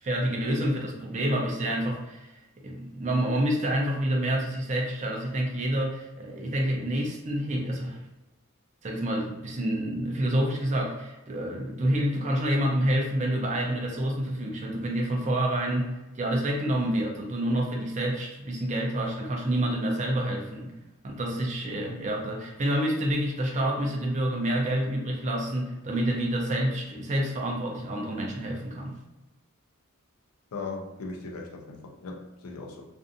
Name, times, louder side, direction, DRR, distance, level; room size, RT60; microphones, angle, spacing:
voice 1, 0.0-8.0 8.8-20.7 21.0-29.0, right 1 dB, 35° right, -1 dB, 0.5 m, -28 dB
voice 2, 30.5-32.9, left 3 dB, 85° left, 1 dB, 0.5 m, -38 dB
2.5 x 2.5 x 2.5 m, 1.0 s
head